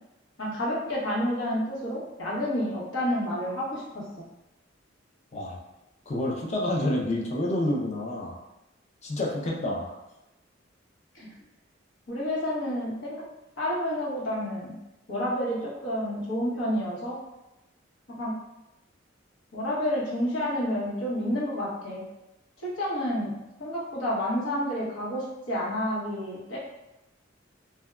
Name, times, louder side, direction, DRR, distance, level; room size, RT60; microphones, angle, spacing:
voice 1, 0.4-4.0 11.1-11.3 12.1-13.3 13.6-14.8 15.1-17.2 18.1-18.3 19.5-22.0 22.6-26.6, equal, 80° left, -6 dB, 1.0 m, -29 dB
voice 2, 6.1-8.4 9.0-9.9, left 1 dB, 35° left, -2 dB, 0.5 m, -28 dB
3.3 x 2.2 x 2.3 m, 0.95 s
head